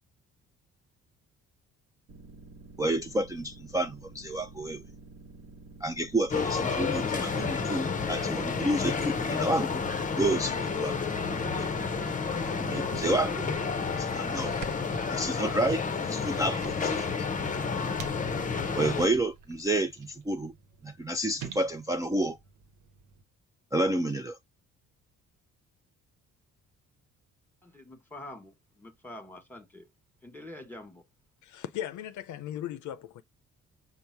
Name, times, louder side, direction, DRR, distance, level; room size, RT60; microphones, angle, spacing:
sound 1, 2.1-13.8, right 3 dB, 55° right, 1.2 m, -50 dB
voice 1, 2.8-4.8 5.8-9.8 10.2-12.0 12.6-13.4 14.0-14.5 15.1-17.3 18.8-20.5 20.8-22.4 23.7-24.4, right 1 dB, 10° right, 0.4 m, -30 dB
sound 2, 6.3-19.1, left 5 dB, 25° left, 0.7 m, -30 dB
sound 3, 12.0-23.2, right 5 dB, 85° right, 0.9 m, -49 dB
voice 2, 27.6-29.9 30.2-31.0, left 1 dB, 5° left, 1.3 m, -46 dB
voice 3, 31.4-33.2, left 11 dB, 75° left, 0.6 m, -37 dB
5.5 x 2.1 x 4.5 m
cardioid pair, 90°, 30 cm